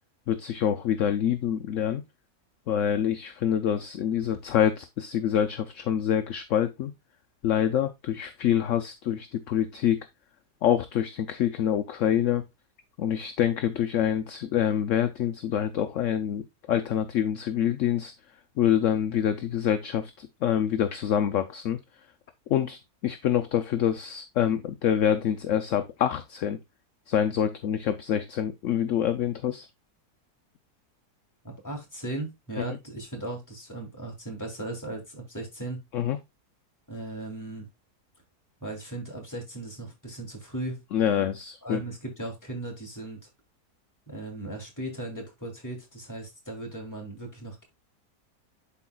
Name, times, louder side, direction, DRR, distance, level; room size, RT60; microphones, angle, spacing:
voice 1, 0.3-2.0 2.7-6.9 7.4-10.0 10.6-12.4 13.0-18.1 18.6-21.8 22.5-26.6 27.1-29.7 32.7-32.8 35.9-36.2 40.9-41.8, left 9 dB, 60° left, 0.9 m, -26 dB
voice 2, 31.4-35.8 36.9-37.7 38.6-40.8 41.6-43.2 44.1-47.6, right 2 dB, 10° left, 2.7 m, -37 dB
11.5 x 4.6 x 2.3 m
omnidirectional pair, 1.7 m